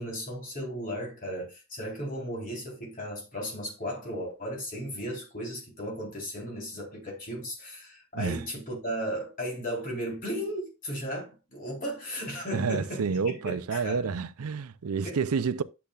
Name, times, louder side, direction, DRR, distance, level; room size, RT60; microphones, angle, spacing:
voice 1, 0.0-14.1 15.0-15.2, equal, 40° left, 4.1 m, -35 dB
voice 2, 12.5-15.6, right 5 dB, 85° right, 0.5 m, -29 dB
10.5 x 7.0 x 2.4 m
head